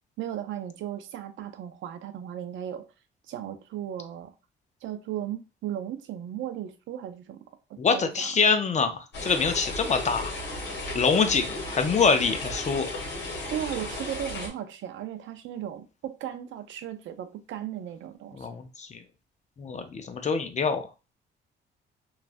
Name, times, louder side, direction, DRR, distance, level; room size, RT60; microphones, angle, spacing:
voice 1, 0.2-2.8 3.3-4.3 4.8-7.4 7.9-8.3 13.5-18.5, right 10 dB, 75° right, 0.5 m, -36 dB
voice 2, 7.8-10.3 10.9-12.9 18.4-19.0 19.6-20.9, left 5 dB, 35° left, 0.5 m, -25 dB
sound 1, 9.1-14.5, left 2 dB, 60° left, 1.3 m, -35 dB
3.1 x 2.4 x 2.5 m
cardioid pair, 90°, 20 cm